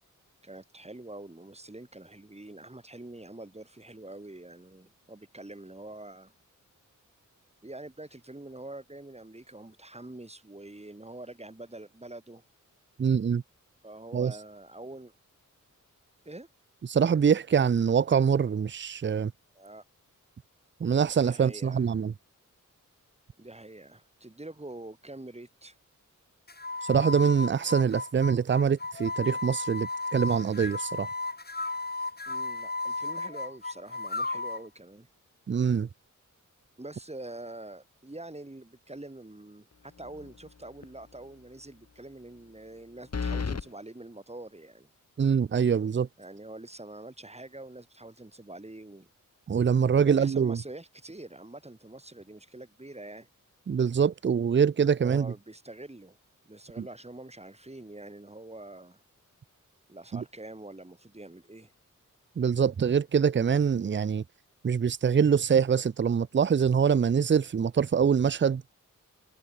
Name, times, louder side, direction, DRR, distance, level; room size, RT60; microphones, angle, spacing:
voice 1, 0.4-6.3 7.6-12.4 13.8-15.1 16.2-16.5 19.5-19.8 21.2-21.9 23.4-25.8 32.3-35.1 36.8-44.9 46.2-49.1 49.9-53.3 55.0-56.2 56.4-59.0 59.9-61.7, right 2 dB, 20° right, 6.6 m, -45 dB
voice 2, 13.0-13.4 14.1-14.3 16.9-19.3 20.8-22.1 26.9-31.1 35.5-35.9 45.2-46.1 49.5-50.6 53.7-55.3 56.8-56.9 62.4-64.2 64.6-68.6, right 7 dB, 35° right, 0.5 m, -24 dB
sound 1, 26.5-34.7, left 3 dB, 30° left, 3.1 m, -35 dB
sound 2, 40.0-40.5 40.8-40.9 43.1-43.7, left 5 dB, 50° left, 1.8 m, -32 dB
wide cardioid pair, 80°, 32 cm